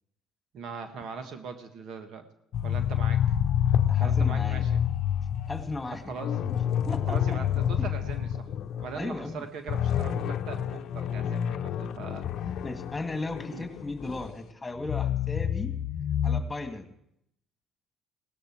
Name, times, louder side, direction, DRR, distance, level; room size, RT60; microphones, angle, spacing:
voice 1, 0.5-2.2 2.6-3.3 4.0-4.8 6.1-6.4 7.1-8.5 8.8-12.6 13.5-13.6, right 5 dB, 65° right, 8 dB, 1.5 m, -40 dB
sound 1, 2.5-9.0 9.3-9.4 9.7-14.3 14.8-16.4, left 9 dB, 60° left, 0.8 m, -28 dB
voice 2, 3.9-4.7 5.5-6.1 6.9-7.4 9.0-9.5 12.6-15.7 16.2-16.9, left 2 dB, 20° left, 6 dB, 2.1 m, -36 dB
17.0 x 13.0 x 4.5 m, 0.74 s
hypercardioid pair, 65°, 0 cm